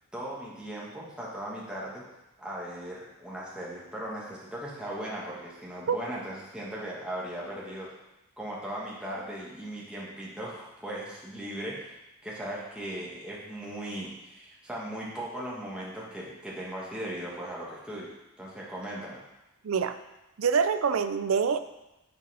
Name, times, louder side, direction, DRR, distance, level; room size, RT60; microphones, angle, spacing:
voice 1, 0.1-2.0 2.4-7.9 8.4-11.9 12.2-18.1 18.4-19.2, right 1 dB, 5° right, -6 dB, 1.4 m, -38 dB
voice 2, 19.6-20.0 20.4-21.6, right 6 dB, 85° right, 10 dB, 0.5 m, -25 dB
7.7 x 4.1 x 5.5 m, 0.97 s
head